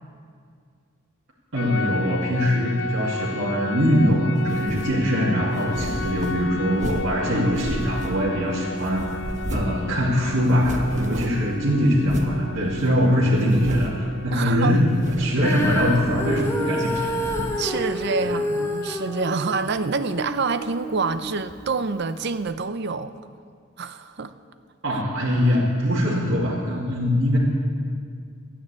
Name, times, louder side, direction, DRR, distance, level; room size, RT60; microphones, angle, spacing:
voice 1, 1.5-9.2 9.5-17.1 18.2-18.4 24.8-27.4, equal, 70° right, -9 dB, 2.5 m, -22 dB
sound 1, 1.6-16.0, left 2 dB, 85° left, 0.6 m, -34 dB
sound 2, 4.4-5.0 5.5-7.2 7.5-8.5 8.8-9.8 10.1-10.2 10.5-11.5 12.0-12.4 12.9-13.0 13.4-14.1 14.8-15.3 15.6-16.5 16.8-17.7, right 1 dB, 35° right, 1.1 m, -33 dB
voice 2, 14.3-14.8 17.6-23.1 23.8-24.3 24.9-25.0, right 4 dB, 55° right, 11 dB, 0.6 m, -27 dB
Female singing, 15.4-21.7 22.4-22.5, equal, 15° left, 1.4 m, -29 dB
12.5 x 9.9 x 8.4 m, 2.2 s
head